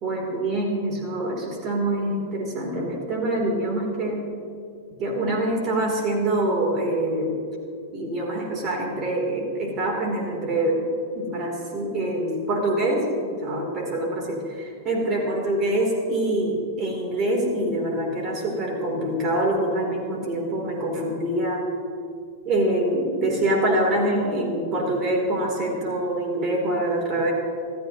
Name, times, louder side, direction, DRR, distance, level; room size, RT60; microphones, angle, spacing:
voice 1, 0.0-4.2 5.0-7.4 7.9-10.9 11.2-14.4 14.8-21.6 22.4-27.3, right 1 dB, 35° right, 0 dB, 3.4 m, -25 dB
27.5 x 14.0 x 3.0 m, 2.3 s
figure-of-eight pair, 95°, 0 cm